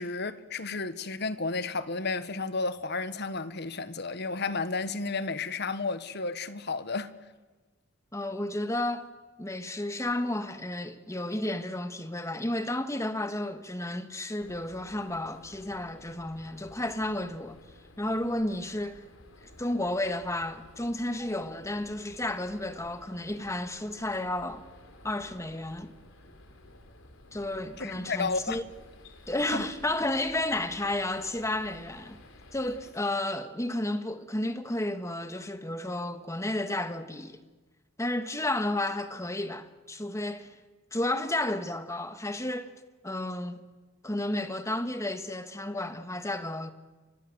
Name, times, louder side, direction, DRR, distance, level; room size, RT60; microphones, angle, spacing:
voice 1, 0.0-7.1 27.8-28.6 29.5-29.6, left 3 dB, 55° left, 1.4 m, -32 dB
voice 2, 8.1-9.1 9.4-17.6 18.0-19.1 19.4-24.6 25.0-25.9 27.3-28.6 29.3-32.2 32.5-37.4 38.0-40.6 40.9-42.7 43.0-43.6 44.0-46.7, left 1 dB, 15° left, 1.6 m, -32 dB
sound 1, 14.4-32.9, left 1 dB, 85° left, 3.6 m, -53 dB
29.5 x 25.0 x 7.9 m
head